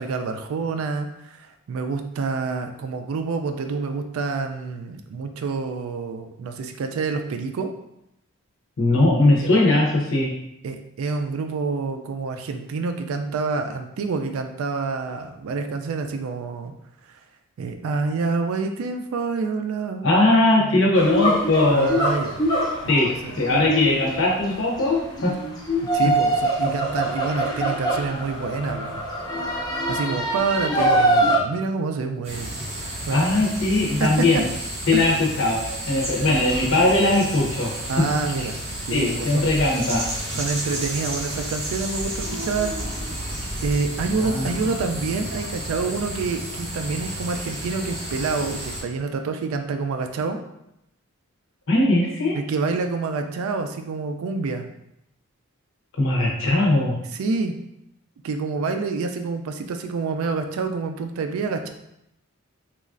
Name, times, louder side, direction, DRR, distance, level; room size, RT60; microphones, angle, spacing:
voice 1, 0.0-7.7 9.4-9.5 10.6-16.7 17.6-20.1 20.6-20.8 21.7-22.3 23.2-23.7 25.9-29.0 29.9-32.6 32.9-33.3 34.0-34.3 34.9-35.1 36.2-36.3 37.9-38.6 38.9-39.5 40.3-42.7 43.6-50.4 52.3-54.7 57.1-57.5 58.2-61.7, right 4 dB, 75° right, 6 dB, 0.3 m, -27 dB
voice 2, 8.8-10.3 20.0-21.9 22.9-23.1 23.4-25.3 33.1-34.4 34.9-35.6 35.9-37.7 38.9-40.0 44.2-44.6 51.7-52.4 56.0-57.0, left 2 dB, 60° left, -2 dB, 0.7 m, -20 dB
sound 1, 20.9-31.4, right 1 dB, 20° left, 0.5 m, -24 dB
sound 2, 32.2-48.8, right 1 dB, 30° right, 0.6 m, -32 dB
3.0 x 2.3 x 2.4 m, 0.81 s
head